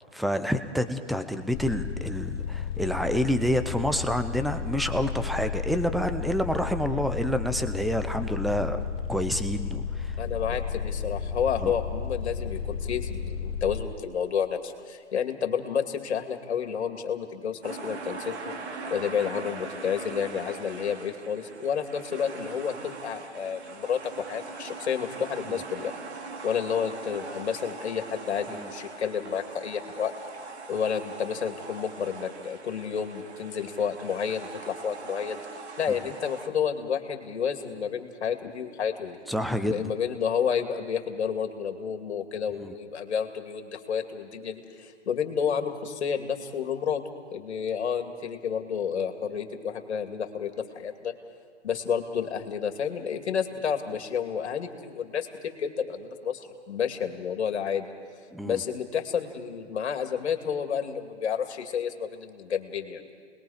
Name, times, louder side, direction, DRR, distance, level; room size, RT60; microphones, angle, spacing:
voice 1, 0.1-8.8 9.1-10.2 10.5-10.6 11.6-11.7 28.5-28.7 35.9-36.0 39.3-39.9 42.6-42.7 58.3-58.6, equal, ahead, 9 dB, 0.6 m, -28 dB
sound 1, 1.5-13.8, left 6 dB, 25° left, 1.3 m, -33 dB
voice 2, 10.2-18.6 18.9-25.9 26.4-30.1 30.7-35.4 35.8-39.2 39.5-47.0 47.3-51.1 51.6-57.9 58.4-63.0, left 7 dB, 65° left, 5 dB, 2.6 m, -30 dB
sound 2, 17.6-36.5, right 4 dB, 65° right, 2.6 m, -41 dB
29.0 x 21.0 x 5.1 m, 2.1 s
hypercardioid pair, 130°, 35 cm